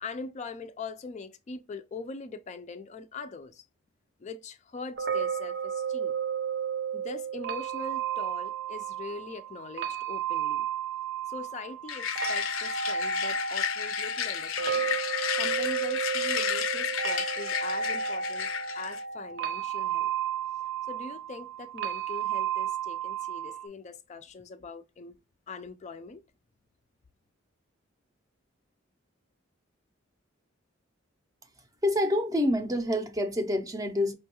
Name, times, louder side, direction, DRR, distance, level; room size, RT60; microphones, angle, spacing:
voice 1, 0.0-3.6 4.2-6.2 6.9-10.7 11.3-15.0 15.4-18.5 18.7-20.1 20.9-25.2 25.5-26.2, left 4 dB, 35° left, 0.3 m, -42 dB
sound 1, 5.0-23.7, right 7 dB, 60° right, 0.7 m, -32 dB
sound 2, 11.9-19.0, left 9 dB, 85° left, 0.5 m, -32 dB
voice 2, 31.8-34.1, left 1 dB, 20° right, 0.5 m, -27 dB
5.3 x 2.3 x 2.8 m
head